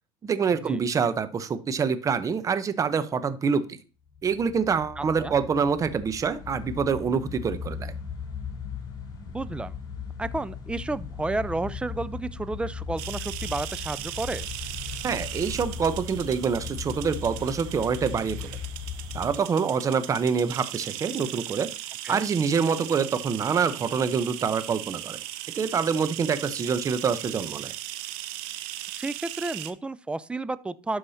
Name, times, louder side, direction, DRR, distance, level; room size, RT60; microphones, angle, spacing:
voice 1, 0.2-3.8 4.2-7.9 15.0-18.6 19.1-21.7 22.1-25.2 25.6-27.7, right 6 dB, 30° right, 13 dB, 0.8 m, -26 dB
sound 1, 4.1-19.4, left 6 dB, 40° left, 3.3 m, -38 dB
voice 2, 5.0-5.3 9.3-9.7 10.2-14.5 22.0-22.2 28.9-31.0, right 2 dB, 10° right, 16 dB, 0.5 m, -31 dB
sound 2, 13.0-29.7, right 14 dB, 70° right, 0.7 m, -38 dB
11.5 x 4.8 x 2.8 m, 0.34 s
supercardioid pair, 95°, 12 cm